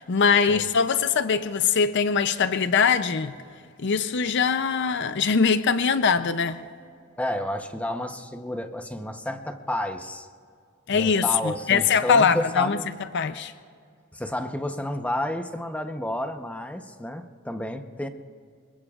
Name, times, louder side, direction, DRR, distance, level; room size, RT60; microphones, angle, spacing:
voice 1, 0.0-3.3 3.8-6.6 10.9-12.8 13.1-13.5, left 6 dB, 60° left, 0.6 m, -22 dB
voice 2, 7.2-10.3 10.9-12.9 14.1-18.1, left 1 dB, 5° left, 0.8 m, -31 dB
26.0 x 22.5 x 2.4 m
head